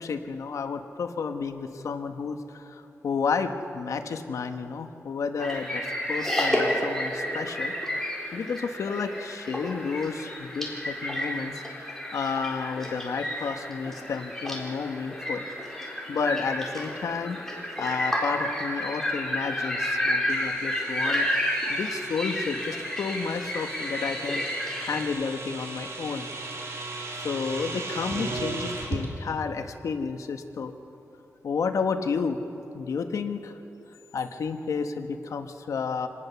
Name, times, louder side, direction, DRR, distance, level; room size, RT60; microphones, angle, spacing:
voice 1, 0.0-11.6 12.1-15.4 16.1-17.4 17.8-21.3 21.7-24.5 24.8-26.4 27.2-30.7 31.4-32.4 32.7-33.6 34.1-36.1, left 5 dB, 75° left, 7 dB, 1.2 m, -31 dB
Seagulls circling overhead, 5.4-25.0, left 1 dB, 5° left, 3.9 m, -31 dB
sound 1, 20.3-29.0, right 3 dB, 60° right, 3.1 m, -37 dB
26.5 x 18.5 x 6.9 m, 3.0 s
wide cardioid pair, 140°, 5 cm